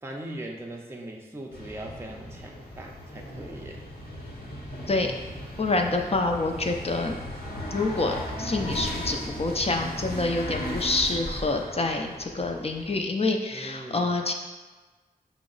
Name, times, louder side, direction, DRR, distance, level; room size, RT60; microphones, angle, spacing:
voice 1, 0.0-3.8 13.5-14.1, right 1 dB, 15° right, 0 dB, 0.5 m, -40 dB
sound 1, 1.5-13.0, equal, 80° left, 0.8 m, -37 dB
voice 2, 5.6-7.2 7.7-14.3, left 2 dB, 40° left, 3 dB, 0.5 m, -27 dB
4.9 x 2.0 x 3.8 m, 1.3 s
cardioid pair, 50°, 16 cm